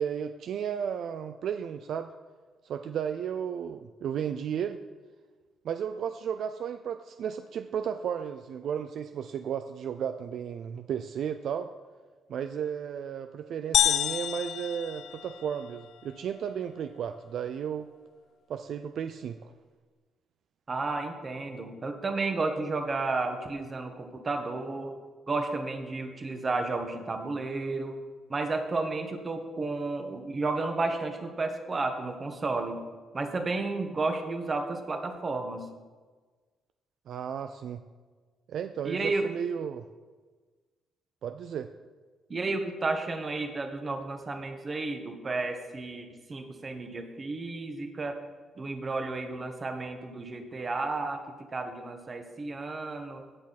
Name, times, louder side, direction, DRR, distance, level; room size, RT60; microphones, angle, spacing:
voice 1, 0.0-2.1 2.6-4.8 5.6-11.7 12.3-17.9 18.5-19.5 37.1-37.8 38.5-39.9 41.2-41.7, right 8 dB, 70° right, 9 dB, 0.4 m, -34 dB
sound 1, 13.7-15.7, left 11 dB, 80° left, 0.4 m, -28 dB
voice 2, 20.7-25.0 25.3-28.0 28.3-32.8 33.1-35.7 38.8-39.3 42.3-48.2 48.5-53.2, right 3 dB, 35° right, 5 dB, 1.4 m, -32 dB
16.5 x 6.3 x 4.2 m, 1.4 s
cardioid pair, 90°, 0 cm